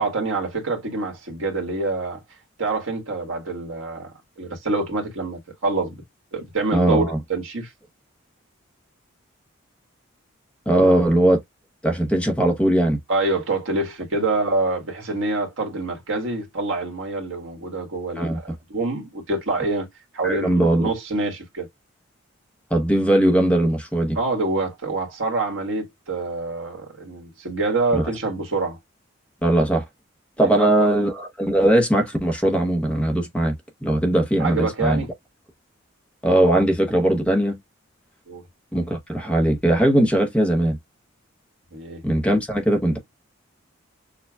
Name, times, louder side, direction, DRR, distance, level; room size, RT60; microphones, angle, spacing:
voice 1, 0.0-2.2 2.6-4.1 4.4-6.0 6.3-7.0 7.3-7.7 10.7-11.0 13.1-19.9 20.1-21.7 24.1-28.8 30.4-30.7 34.4-35.1 38.3-38.4 41.7-42.0, right 3 dB, 75° right, 1.5 m, -26 dB
voice 2, 6.7-7.2 10.7-11.4 11.8-13.0 18.2-18.4 20.2-20.9 22.7-24.2 27.9-28.0 29.4-29.8 30.4-35.0 36.2-37.6 38.7-40.8 42.0-43.0, right 1 dB, 5° left, 0.8 m, -19 dB
6.5 x 2.2 x 2.3 m
head